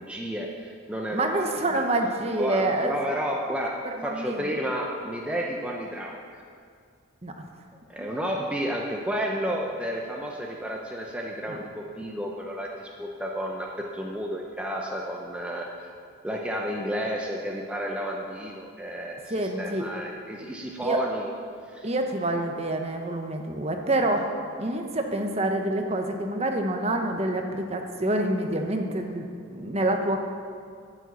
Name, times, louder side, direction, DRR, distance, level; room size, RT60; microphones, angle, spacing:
voice 1, 0.0-1.8 2.3-6.4 7.9-15.9 16.2-21.3 21.7-21.9, equal, 5° right, -1 dB, 0.7 m, -31 dB
voice 2, 1.1-2.9 3.8-4.5 7.2-7.3 8.0-8.1 11.5-11.6 19.3-19.9 20.8-21.0 21.8-24.3 24.6-30.2, right 1 dB, 30° right, 3 dB, 0.9 m, -27 dB
9.9 x 7.6 x 8.2 m, 2.2 s
head